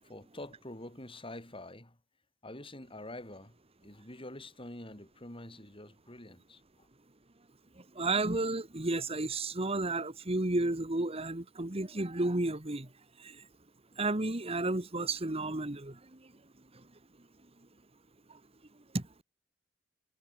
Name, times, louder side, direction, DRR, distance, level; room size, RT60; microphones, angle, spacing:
voice 1, 0.0-2.0 2.4-3.5 3.8-6.9, left 1 dB, 30° left, 7.9 m, -46 dB
voice 2, 7.8-12.9 13.2-13.5 14.0-16.3 16.7-16.8 18.3-18.4 18.9-19.0, right 2 dB, 30° right, 1.7 m, -32 dB
head